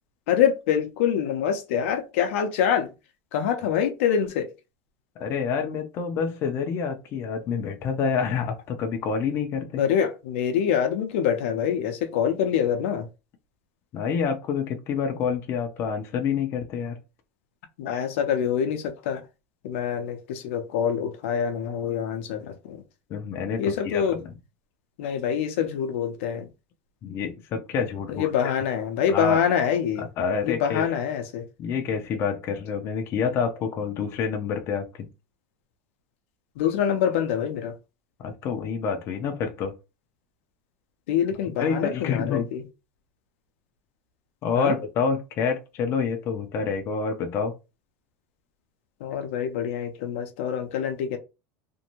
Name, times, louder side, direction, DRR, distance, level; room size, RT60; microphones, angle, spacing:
voice 1, 0.3-2.9 3.3-4.5 9.8-13.1 17.8-19.2 19.6-22.8 23.6-24.2 25.0-26.5 28.1-30.1 30.4-31.5 36.6-37.7 41.1-42.6 44.5-44.7 49.0-51.2, left 8 dB, 80° left, 0.6 m, -25 dB
voice 2, 5.2-9.8 13.9-17.0 23.1-24.3 27.0-28.3 29.1-29.4 30.0-30.9 31.6-35.1 38.2-39.7 41.6-42.5 44.4-47.5, left 6 dB, 40° left, 0.5 m, -27 dB
2.6 x 2.2 x 2.9 m
supercardioid pair, 145°, 7 cm